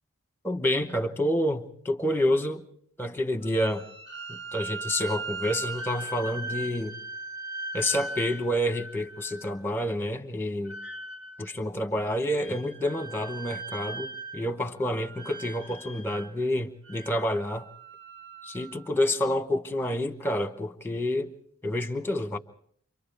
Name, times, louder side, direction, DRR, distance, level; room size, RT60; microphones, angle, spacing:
voice 1, 0.4-2.6 3.0-3.8 4.3-7.0 7.7-10.8 11.4-17.7 18.4-21.3 21.6-22.4, left 1 dB, 10° left, 1.0 m, -28 dB
sound 1, 3.4-9.6 10.7-11.5 12.0-14.6 14.8-16.4 16.9-18.9, right 3 dB, 75° right, 3.6 m, -39 dB
29.5 x 26.0 x 3.4 m
head